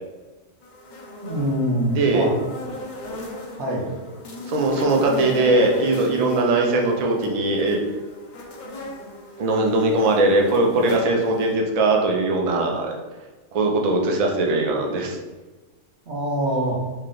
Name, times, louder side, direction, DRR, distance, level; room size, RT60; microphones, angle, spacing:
sound 1, 0.6-11.5, left 1 dB, 55° left, 0.5 m, -37 dB
voice 1, 1.2-2.3 3.6-3.9 16.1-16.8, equal, 60° right, -2 dB, 1.1 m, -24 dB
voice 2, 2.0-2.3 4.5-7.8 9.4-13.0 13.5-15.2, right 2 dB, 75° right, 0 dB, 0.3 m, -20 dB
3.1 x 2.8 x 3.7 m, 1.2 s
omnidirectional pair, 1.4 m